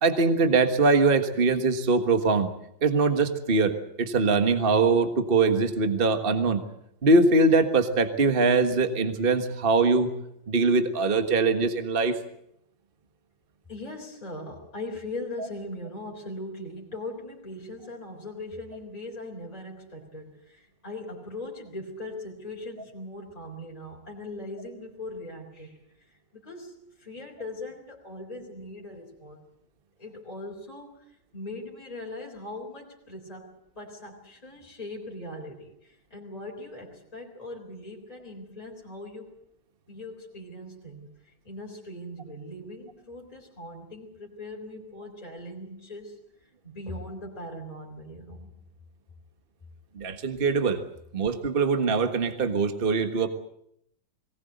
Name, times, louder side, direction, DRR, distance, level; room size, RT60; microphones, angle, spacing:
voice 1, 0.0-2.5 2.8-6.6 7.0-10.1 10.5-12.2 50.0-50.8 51.1-53.3, right 3 dB, 30° right, 7 dB, 1.6 m, -22 dB
voice 2, 13.7-29.4 30.0-39.3 39.9-46.2 46.6-48.5, left 1 dB, 20° left, -1 dB, 3.9 m, -40 dB
22.0 x 19.0 x 8.0 m, 0.75 s
omnidirectional pair, 2.0 m